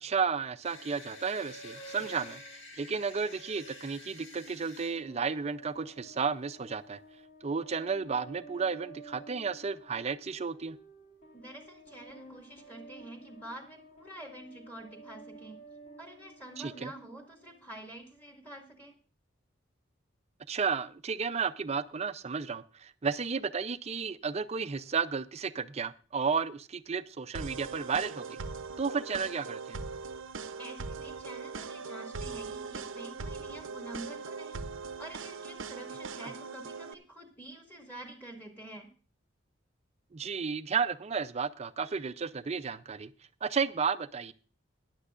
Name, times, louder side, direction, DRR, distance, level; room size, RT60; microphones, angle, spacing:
voice 1, 0.0-2.4 2.8-7.0 7.4-10.8 16.6-16.9 20.5-28.4 28.8-29.8 40.1-43.1 43.4-44.3, right 5 dB, 35° right, 13 dB, 0.5 m, -33 dB
sound 1, 0.6-5.0, equal, 70° left, 1.9 m, -48 dB
sound 2, 4.8-17.8, right 2 dB, 35° left, 2.6 m, -53 dB
voice 2, 11.3-15.6 16.0-18.9 30.6-34.6 35.0-38.9, right 1 dB, 10° left, 2 dB, 2.1 m, -47 dB
sound 3, 27.3-36.9, right 4 dB, 80° right, 0.7 m, -40 dB
18.0 x 10.5 x 2.5 m, 0.37 s
head